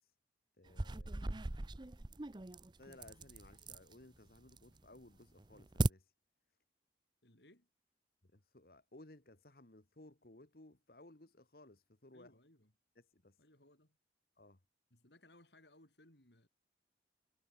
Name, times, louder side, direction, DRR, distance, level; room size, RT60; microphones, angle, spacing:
voice 1, 0.6-1.6 2.8-6.1 8.2-12.3 13.0-13.4 14.4-14.6, left 1 dB, 55° left, 1.7 m, -60 dB
sound 1, 0.7-3.9 4.3-4.9 5.2-5.9, right 2 dB, 25° right, 0.7 m, -39 dB
voice 2, 7.2-7.7 12.1-12.7 13.4-14.0 14.9-16.5, left 1 dB, 70° left, 6.7 m, -64 dB
head